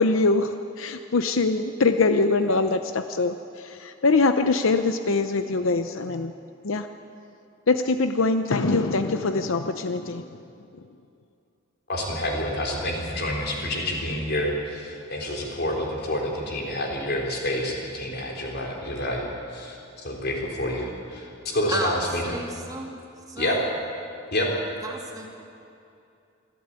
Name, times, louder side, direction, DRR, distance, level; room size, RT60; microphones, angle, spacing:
voice 1, 0.0-6.3 6.6-6.9 7.7-10.4, left 3 dB, 70° left, 8 dB, 0.7 m, -23 dB
voice 2, 11.9-22.2 23.4-23.6 24.3-24.5, left 1 dB, 50° left, 0 dB, 4.0 m, -28 dB
voice 3, 22.3-22.9 23.3-23.6 24.8-25.3, right 2 dB, 20° right, 0 dB, 2.4 m, -32 dB
23.5 x 14.0 x 9.0 m, 2.6 s
head